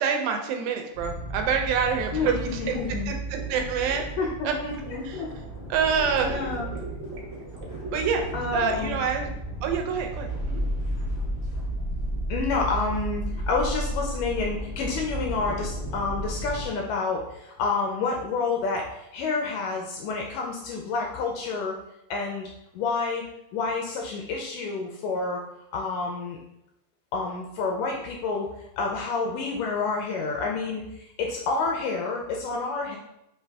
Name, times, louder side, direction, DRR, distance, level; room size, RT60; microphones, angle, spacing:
voice 1, 0.0-2.8 3.1-4.1 4.4-4.5 5.0-5.2 5.7-6.4 7.9-8.2 8.5-9.3 9.6-10.6, right 6 dB, 85° right, 4 dB, 2.4 m, -26 dB
sound 1, 0.9-16.6, right 1 dB, 60° left, 0.6 m, -33 dB
voice 2, 2.1-3.2 4.2-5.3 6.3-6.7 8.3-9.0 12.3-21.8 22.1-25.4 25.7-26.4 27.1-28.5 28.8-33.0, left 4 dB, 80° left, 0 dB, 1.9 m, -29 dB
sound 2, 3.4-5.2 5.8-9.0, right 2 dB, 65° right, 2.0 m, -39 dB
5.7 x 2.5 x 3.4 m, 0.84 s
omnidirectional pair, 4.1 m